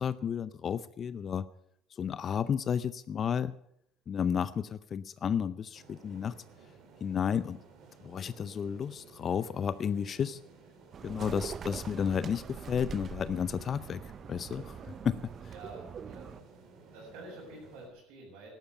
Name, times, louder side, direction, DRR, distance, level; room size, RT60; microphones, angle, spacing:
voice 1, 0.0-1.5 1.9-3.5 4.1-6.3 7.0-7.6 8.0-10.4 11.0-14.0 14.3-15.3, left 7 dB, 40° left, 15 dB, 0.6 m, -32 dB
sound 1, 5.7-17.9, right 4 dB, 55° right, 3.7 m, -56 dB
sound 2, 10.9-16.4, right 7 dB, 40° right, 0.6 m, -43 dB
voice 2, 15.5-16.4 16.9-18.5, right 2 dB, 80° right, -6 dB, 6.5 m, -48 dB
12.5 x 12.0 x 6.8 m, 0.73 s
supercardioid pair, 100°, 0 cm